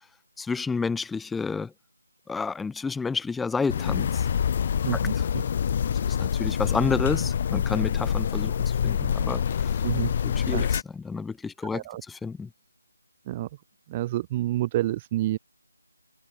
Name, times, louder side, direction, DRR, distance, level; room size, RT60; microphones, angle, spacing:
voice 1, 0.4-1.7 2.3-4.3 4.9-5.3 5.8-9.7 10.2-12.5, left 4 dB, 5° left, 1.3 m, -30 dB
sound 1, 3.7-10.8, left 8 dB, 30° left, 1.7 m, -26 dB
voice 2, 4.8-5.4 9.8-10.1 10.5-10.6 11.7-12.0 13.3-13.5 13.9-15.4, right 15 dB, 20° right, 0.4 m, -28 dB
figure-of-eight pair, 165°, 0 cm